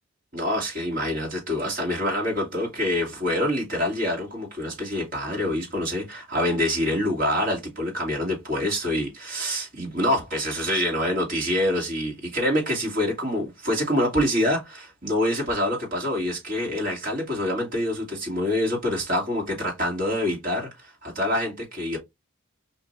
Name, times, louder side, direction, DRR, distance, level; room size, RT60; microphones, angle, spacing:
voice 1, 0.3-22.0, left 1 dB, 45° right, 2.6 m, -26 dB
5.5 x 3.0 x 2.7 m
head